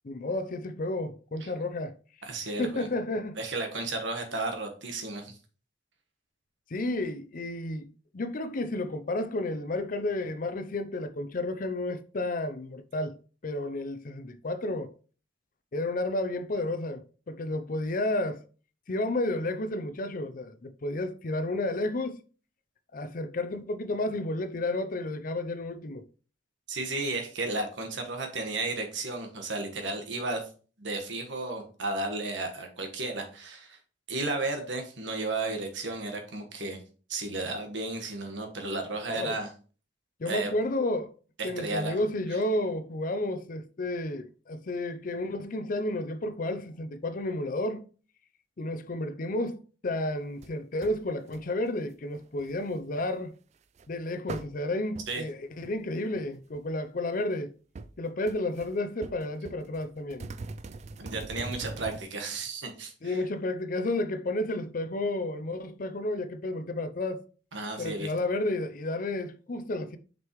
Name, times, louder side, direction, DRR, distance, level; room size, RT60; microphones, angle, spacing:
voice 1, 0.0-1.9 2.6-3.4 6.7-13.2 13.4-14.9 15.7-18.4 18.9-22.2 22.9-26.0 39.1-39.3 40.2-41.1 41.4-47.9 48.6-53.3 53.9-57.5 58.0-60.3 63.0-67.2 67.8-70.0, left 2 dB, 45° left, 0.5 m, -31 dB
voice 2, 2.2-2.9 3.4-5.4 26.7-30.5 30.8-33.8 34.1-36.8 37.1-39.5 40.2-40.5 41.4-42.0 42.3-42.4 55.1-55.2 61.0-63.2 67.5-68.1, right 2 dB, 70° right, 1.4 m, -33 dB
sound 1, 50.4-50.5 50.8-51.0 51.3-51.7 52.1-52.8 53.8-53.9 54.3-54.5 55.0-55.1 55.6-55.9 56.2-56.3 56.5-56.9 57.8-57.9 58.3-58.7 59.0-62.0, right 3 dB, 35° right, 0.3 m, -41 dB
6.3 x 5.3 x 3.1 m
head